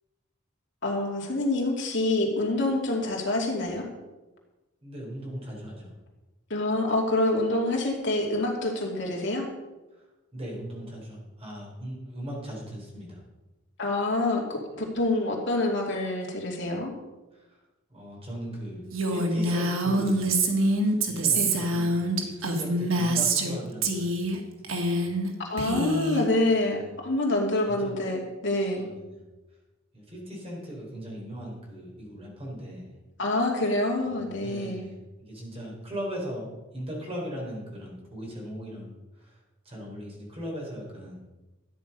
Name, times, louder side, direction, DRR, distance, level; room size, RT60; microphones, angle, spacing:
voice 1, 0.8-3.9 6.5-9.5 13.8-16.9 21.3-21.5 25.5-28.8 33.2-34.8, left 2 dB, 60° left, 0 dB, 2.6 m, -26 dB
voice 2, 4.8-5.9 10.3-13.2 17.3-17.6 17.9-20.6 20.8-24.2 24.6-25.0 26.6-26.9 27.6-27.9 28.8-29.2 29.9-32.9 34.1-36.5 36.7-38.9 39.2-39.4 39.6-41.2, equal, 30° right, -2 dB, 4.1 m, -38 dB
Female speech woman speaking, 18.9-23.5 23.8-24.4 24.6-25.3 25.6-26.2, right 2 dB, 85° right, 1.9 m, -25 dB
13.0 x 9.4 x 5.4 m, 1.1 s
head